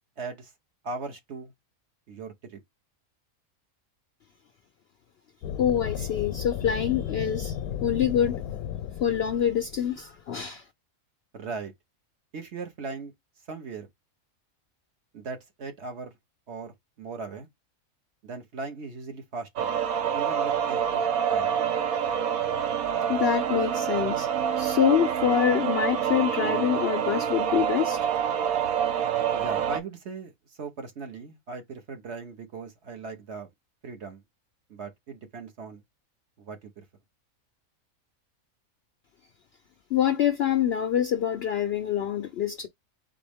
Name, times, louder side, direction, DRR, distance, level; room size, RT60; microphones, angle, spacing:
voice 1, 0.2-0.5 0.8-1.5 2.1-2.6 11.3-11.7 12.3-13.1 13.5-13.9 15.1-16.1 16.5-17.5 18.2-19.7 20.1-21.0 21.3-21.6 29.3-30.3 30.6-33.5 33.8-34.2 34.7-35.8 36.4-36.7, right 4 dB, 55° right, 1.2 m, -38 dB
sound 1, 5.4-10.2, left 9 dB, 80° left, 1.0 m, -34 dB
voice 2, 5.6-8.4 9.0-10.6 23.1-24.3 24.6-28.1 39.9-42.7, left 9 dB, 65° left, 0.6 m, -25 dB
sound 2, 19.6-29.8, right 8 dB, 75° right, 1.2 m, -27 dB
4.1 x 3.6 x 3.4 m
omnidirectional pair, 1.5 m